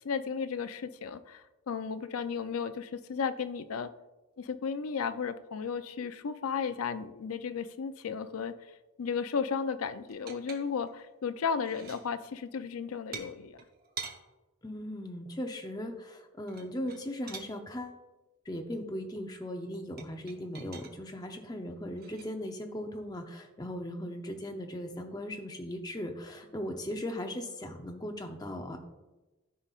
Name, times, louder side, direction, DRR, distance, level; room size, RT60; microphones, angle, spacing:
voice 1, 0.0-3.9 4.4-8.5 9.0-13.6, left 6 dB, 85° left, 11 dB, 0.5 m, -34 dB
sound 1, 10.1-11.0 11.4-12.1 13.1-14.2 16.4-17.5 20.0-21.0 22.0-22.2, right 5 dB, 45° right, 0.8 m, -44 dB
voice 2, 14.6-18.0 18.5-28.8, left 1 dB, 20° left, 3 dB, 0.7 m, -38 dB
13.5 x 5.4 x 2.4 m, 1.1 s
head